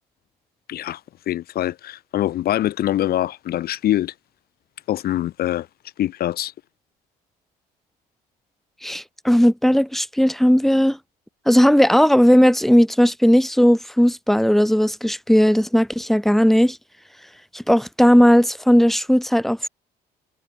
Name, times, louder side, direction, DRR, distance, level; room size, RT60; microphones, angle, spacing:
voice 1, 0.7-1.0 1.3-4.1 4.9-5.7 6.0-6.5, left 13 dB, 65° left, 2.1 m, -24 dB
voice 2, 8.8-11.0 11.5-16.8 17.5-19.7, equal, ahead, 4.0 m, -16 dB
cardioid pair, 110°, 17 cm